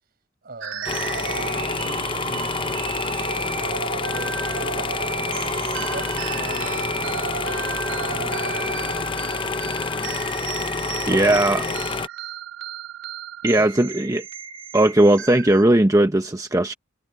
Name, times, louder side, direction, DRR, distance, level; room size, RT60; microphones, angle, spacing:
voice 1, 0.4-0.9 1.3-3.3 3.6-5.0 5.6-7.5 8.1-9.6 11.1-11.4 11.7-11.8 13.5-13.9, right 2 dB, 50° right, 5.6 m, -41 dB
sound 1, 0.6-15.6, right 6 dB, 75° right, 3.2 m, -33 dB
sound 2, 0.8-12.1, left 4 dB, 25° left, 0.6 m, -28 dB
voice 2, 11.1-11.6 13.4-14.2 14.7-16.7, right 1 dB, 15° right, 0.9 m, -18 dB
head